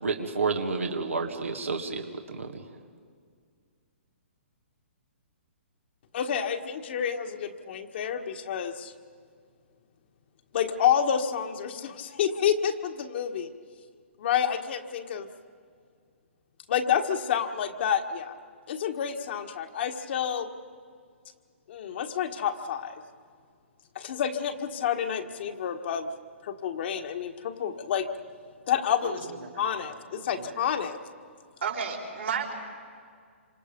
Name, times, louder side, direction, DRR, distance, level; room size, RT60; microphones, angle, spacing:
voice 1, 0.0-2.0 2.3-2.5, right 4 dB, 90° right, 2 dB, 2.0 m, -29 dB
voice 2, 6.1-8.9 10.5-13.5 14.2-15.3 16.7-18.4 18.7-20.5 21.7-23.0 23.9-26.1 26.4-28.1 28.7-31.0, left 8 dB, 55° left, 5 dB, 1.6 m, -29 dB
voice 3, 29.0-29.9 30.1-30.7 31.6-32.6, right 6 dB, 75° right, 1 dB, 5.1 m, -34 dB
27.0 x 26.0 x 5.3 m, 2.1 s
hypercardioid pair, 130°, 7 cm